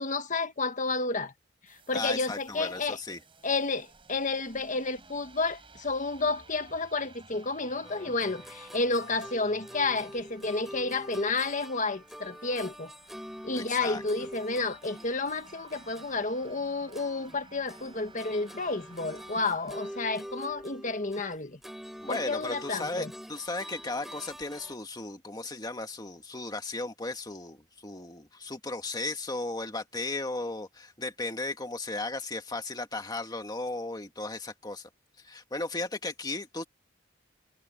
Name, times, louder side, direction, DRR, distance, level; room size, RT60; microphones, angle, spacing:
voice 1, 0.0-1.3 1.7-3.0 3.4-12.9 13.4-21.6 22.1-23.1, left 3 dB, 40° left, 1.5 m, -31 dB
sound 1, 1.7-19.9, right 3 dB, 25° right, 6.3 m, -56 dB
voice 2, 1.9-3.2 13.6-14.0 22.0-34.9 35.2-36.6, left 2 dB, 20° left, 2.0 m, -35 dB
sound 2, 7.8-17.4 17.7-24.8, equal, ahead, 5.0 m, -45 dB
head